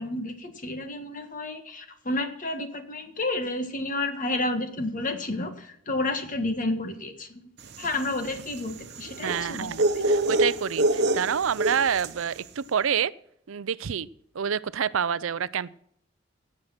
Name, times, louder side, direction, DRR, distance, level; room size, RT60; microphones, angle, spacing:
voice 1, 0.0-7.4 7.8-10.0, left 2 dB, 40° left, 7 dB, 1.7 m, -31 dB
sound 1, 7.7-12.3, right 1 dB, 55° right, 1.1 m, -26 dB
voice 2, 9.2-13.1 13.5-14.1 14.3-15.7, right 7 dB, 85° right, 18 dB, 0.5 m, -27 dB
17.0 x 7.6 x 5.9 m, 0.69 s
head